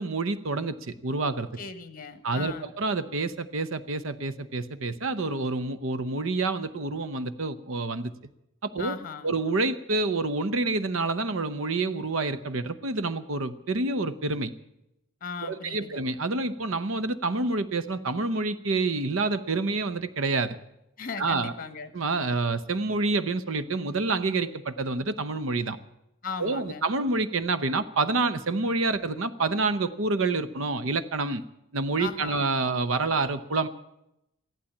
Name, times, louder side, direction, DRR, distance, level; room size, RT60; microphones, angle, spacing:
voice 1, 0.0-1.5 2.2-8.1 8.6-9.0 9.2-14.5 15.4-20.6 21.2-21.5 21.9-25.8 26.4-31.4 31.7-33.7, right 3 dB, 65° right, 13 dB, 0.8 m, -28 dB
voice 2, 1.6-2.7 8.8-9.3 15.2-16.0 21.0-21.9 26.2-26.8 32.0-32.5, left 5 dB, 40° left, 11 dB, 1.3 m, -37 dB
15.0 x 11.5 x 8.4 m, 0.84 s
head